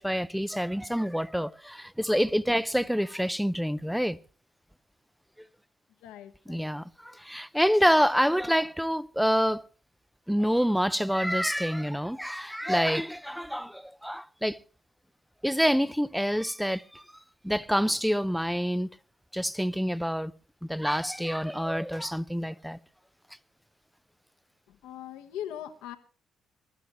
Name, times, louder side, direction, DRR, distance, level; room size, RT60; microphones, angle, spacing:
voice 1, 0.0-4.2 6.5-9.6 10.3-14.6 15.4-17.0 17.4-18.9 19.3-20.3 20.7-22.8, equal, ahead, 0.7 m, -27 dB
voice 2, 6.0-6.7 24.7-26.0, left 11 dB, 80° left, 1.1 m, -40 dB
23.0 x 12.5 x 3.0 m
hypercardioid pair, 50°, 0 cm